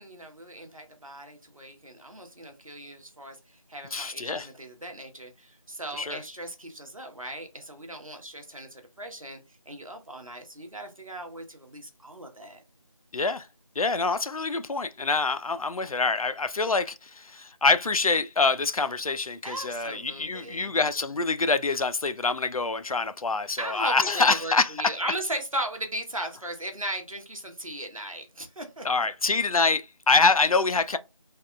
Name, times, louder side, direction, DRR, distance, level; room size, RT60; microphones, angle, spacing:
voice 1, 0.0-9.4 9.7-12.6 19.4-20.7 23.6-29.1, right 1 dB, 75° right, 1.0 m, -37 dB
voice 2, 3.9-4.5 5.9-6.2 13.1-13.5 13.8-24.7 28.8-31.0, left 3 dB, 90° left, 0.4 m, -25 dB
3.4 x 2.3 x 2.3 m
figure-of-eight pair, 175°, 18 cm